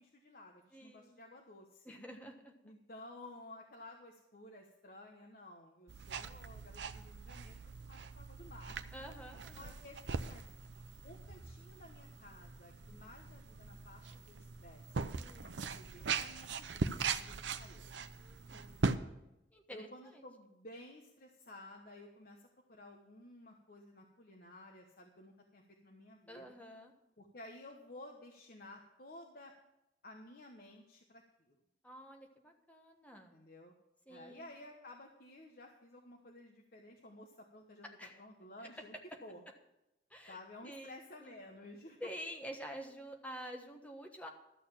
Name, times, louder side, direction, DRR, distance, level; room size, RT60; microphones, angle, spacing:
voice 1, 0.0-2.0 2.6-8.8 9.5-10.5 11.0-15.0 15.4-17.8 19.7-26.5 27.2-29.5 30.0-31.6 33.3-33.7 34.1-37.9 38.2-38.9 39.2-39.4 40.3-42.0, left 1 dB, 55° left, 1 dB, 1.1 m, -54 dB
voice 2, 0.7-1.2 1.8-2.5 8.9-9.8 15.2-15.6 18.1-18.7 19.5-20.3 26.3-26.9 31.8-33.4 34.1-34.5 38.0-38.2 40.1-41.4 42.0-44.3, equal, 10° left, 3 dB, 1.3 m, -49 dB
sound 1, 5.9-19.0, right 4 dB, 80° right, 0.6 m, -41 dB
12.5 x 6.8 x 7.3 m, 0.91 s
head